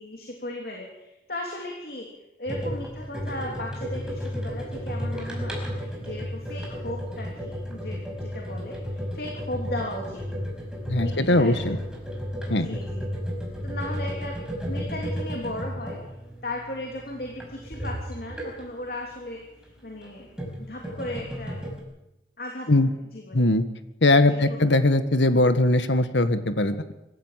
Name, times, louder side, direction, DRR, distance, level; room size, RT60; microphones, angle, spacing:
voice 1, 0.0-2.1 2.4-10.5 11.0-11.7 12.5-13.0 13.6-14.4 14.7-16.0 16.4-20.3 20.6-21.6 22.4-22.7 23.1-23.4 24.3-24.6, left 1 dB, 55° left, 0 dB, 3.2 m, -36 dB
sound 1, 2.5-18.8 19.9-21.8, equal, 5° right, 5.3 m, -33 dB
voice 2, 10.9-11.8 12.5-12.8 22.7-22.9 23.3-23.6 24.0-26.9, left 2 dB, 85° left, 11 dB, 1.6 m, -20 dB
24.0 x 15.0 x 7.6 m, 0.93 s
head